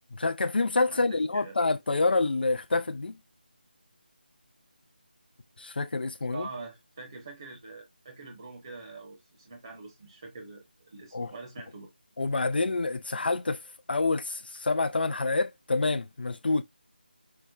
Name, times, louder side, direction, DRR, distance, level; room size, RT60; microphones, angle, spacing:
voice 1, 0.1-3.2 5.6-6.5 11.1-11.3 12.2-13.6 13.9-16.6, left 3 dB, 70° left, 0.4 m, -27 dB
voice 2, 0.9-1.6 6.3-11.9, right 3 dB, 35° right, 0.9 m, -44 dB
5.5 x 2.0 x 2.3 m
figure-of-eight pair, 165°, 6 cm